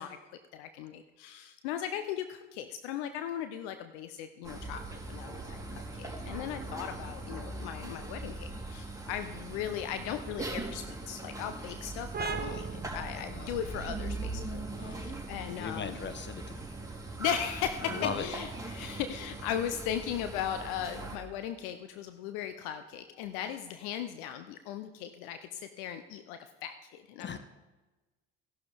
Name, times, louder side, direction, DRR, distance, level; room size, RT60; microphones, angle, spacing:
voice 1, 0.0-12.7 12.9-16.0 17.2-27.4, left 9 dB, 70° left, 9 dB, 0.8 m, -37 dB
sound 1, 4.4-21.2, right 2 dB, 10° right, 3.6 m, -41 dB
sound 2, 12.1-19.4, right 6 dB, 30° right, 1.0 m, -43 dB
voice 2, 12.3-12.6 13.1-13.5 14.8-15.0 15.5-16.6 17.8-18.2 27.2-27.4, left 6 dB, 30° left, 10 dB, 1.3 m, -38 dB
16.5 x 11.5 x 3.5 m, 1.2 s
hypercardioid pair, 55°, 35 cm